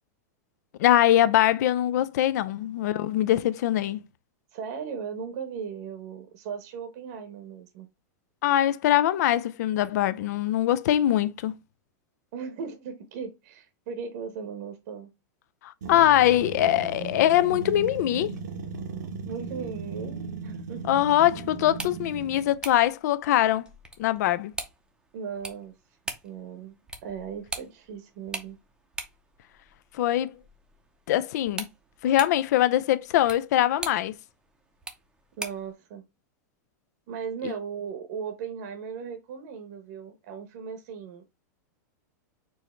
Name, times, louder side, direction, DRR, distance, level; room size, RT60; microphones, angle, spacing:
voice 1, 0.8-4.0 8.4-11.5 15.6-18.3 20.9-23.7 24.0-24.5 30.0-30.3 31.1-31.7 32.0-34.1 37.4-37.5, left 13 dB, 65° left, 0.5 m, -22 dB
voice 2, 4.5-7.9 12.3-15.1 19.3-20.8 25.1-25.7 26.2-26.8 27.0-28.6 35.4-36.0 37.1-41.4, right 6 dB, 55° right, 0.9 m, -37 dB
sound 1, 15.8-22.6, right 4 dB, 90° right, 1.2 m, -37 dB
sound 2, 21.6-35.7, right 3 dB, 10° right, 0.6 m, -42 dB
4.7 x 2.7 x 4.3 m
supercardioid pair, 150°, 10 cm